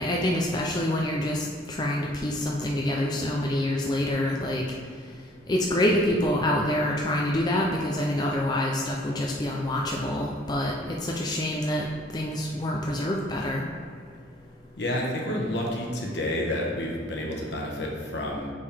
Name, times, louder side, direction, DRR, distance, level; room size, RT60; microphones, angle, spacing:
voice 1, 0.0-4.6 5.5-10.7 11.0-11.8 12.1-13.6, left 1 dB, 20° left, -1 dB, 0.4 m, -26 dB
voice 2, 14.8-18.5, left 1 dB, 65° left, -1 dB, 1.1 m, -29 dB
6.5 x 5.3 x 3.4 m, 2.1 s
head